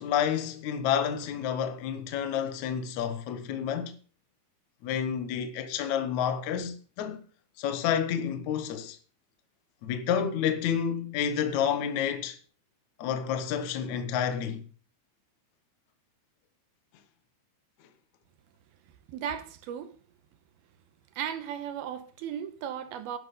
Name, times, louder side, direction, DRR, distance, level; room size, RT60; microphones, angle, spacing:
voice 1, 0.0-3.9 4.8-7.2 7.6-9.0 9.8-12.4 13.0-14.6, left 8 dB, 75° left, 1.7 m, -29 dB
voice 2, 19.1-19.9 21.2-23.2, right 9 dB, 75° right, 2.6 m, -36 dB
11.5 x 11.0 x 5.3 m
omnidirectional pair, 5.0 m